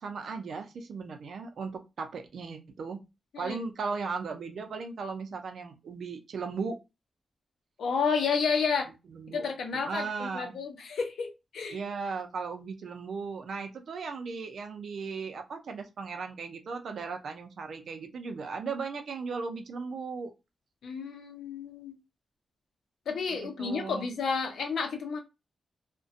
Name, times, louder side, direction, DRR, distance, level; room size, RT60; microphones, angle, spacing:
voice 1, 0.0-3.0 3.4-6.8 9.1-9.5 9.8-10.5 11.7-20.3 23.3-24.1, right 4 dB, 70° right, 0.5 m, -37 dB
voice 2, 7.8-8.9 9.3-11.8 20.8-21.9 23.1-25.2, left 5 dB, 85° left, 0.6 m, -31 dB
2.4 x 2.2 x 2.5 m
wide cardioid pair, 120°, 0 cm